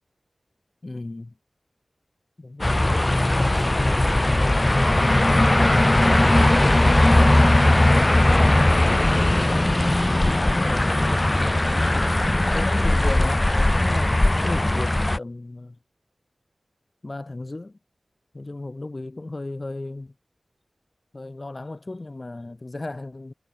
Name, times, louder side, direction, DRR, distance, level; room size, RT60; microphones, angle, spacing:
voice 1, 0.8-1.3 2.4-4.0 7.1-9.2 10.1-11.0 12.2-15.8 17.0-17.8 18.3-20.1 21.1-23.3, left 2 dB, 45° left, 3.6 m, -36 dB
sound 1, 2.6-15.2, left 1 dB, 30° left, 0.4 m, -19 dB
cardioid pair, 45°, 0 cm